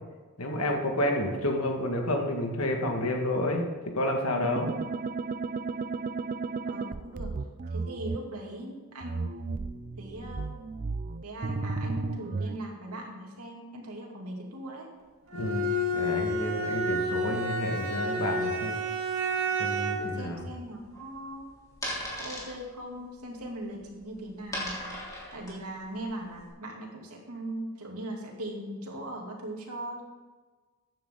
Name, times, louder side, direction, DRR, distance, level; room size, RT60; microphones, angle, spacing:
voice 1, 0.4-4.7 15.3-15.7 15.9-18.8 19.6-20.5, left 1 dB, 70° left, 2 dB, 2.0 m, -30 dB
sound 1, 4.4-8.2 9.0-12.6, right 4 dB, 40° right, 0.4 m, -34 dB
voice 2, 6.7-7.4 7.7-9.7 10.0-10.5 11.2-14.9 20.0-21.5 22.2-25.0 25.3-30.0, right 1 dB, 80° right, -1 dB, 2.8 m, -39 dB
Bowed string instrument, 15.3-20.2, equal, 65° right, 2.1 m, -30 dB
sound 2, 20.1-26.5, equal, 15° left, 3.6 m, -39 dB
14.5 x 10.0 x 3.9 m, 1.3 s
head